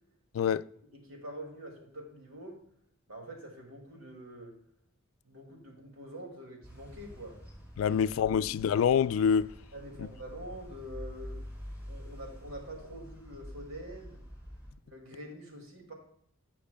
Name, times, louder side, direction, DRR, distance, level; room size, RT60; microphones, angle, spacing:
voice 1, 0.9-2.6 3.1-4.5 5.2-7.4 7.8-8.0 8.3-8.4 9.7-11.4 11.9-14.2 14.8-15.9, right 1 dB, 80° right, 2.2 m, -45 dB
sound 1, 6.6-14.7, equal, 10° right, 3.6 m, -47 dB
voice 2, 7.8-9.5 10.0-10.1, left 7 dB, 75° left, 0.3 m, -26 dB
16.5 x 5.9 x 2.2 m
head